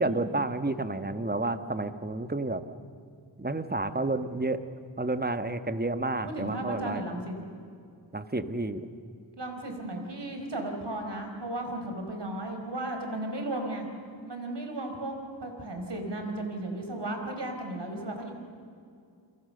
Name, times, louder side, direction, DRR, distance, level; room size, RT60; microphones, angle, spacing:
voice 1, 0.0-2.6 3.4-4.6 5.0-7.0 8.1-8.9, right 2 dB, 20° right, 10 dB, 1.4 m, -30 dB
voice 2, 6.3-7.3 9.4-13.9 14.3-15.1 15.4-18.3, right 1 dB, 60° right, 4 dB, 4.8 m, -35 dB
29.5 x 22.5 x 6.8 m, 2.4 s
wide cardioid pair, 55°, 46 cm